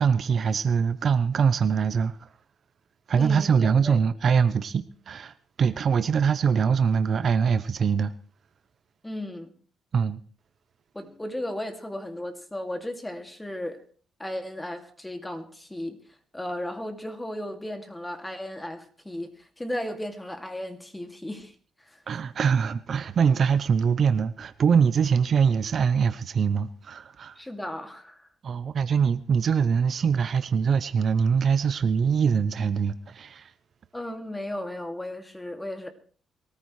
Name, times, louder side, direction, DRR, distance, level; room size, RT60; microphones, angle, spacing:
voice 1, 0.0-2.3 3.1-8.1 9.9-10.2 22.1-27.4 28.4-33.5, right 6 dB, 55° right, 0.7 m, -23 dB
voice 2, 3.1-4.0 9.0-9.5 10.9-13.8 14.2-22.0 27.4-28.3 33.9-35.9, left 1 dB, 10° left, 2.3 m, -35 dB
23.0 x 14.0 x 3.2 m
cardioid pair, 90°, 0 cm